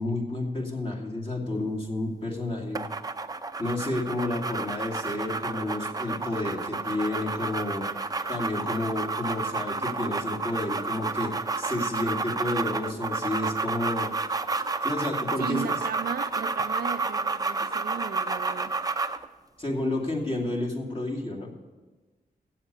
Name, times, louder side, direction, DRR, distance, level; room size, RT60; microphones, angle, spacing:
voice 1, 0.0-2.8 3.6-7.9 8.3-14.1 14.8-15.7 19.6-21.5, left 2 dB, 35° left, 2.4 m, -30 dB
sound 1, 2.8-19.3, right 4 dB, 20° right, 0.6 m, -30 dB
voice 2, 15.4-18.8, right 7 dB, 70° right, 0.5 m, -36 dB
8.0 x 7.4 x 8.3 m
cardioid pair, 60°, 17 cm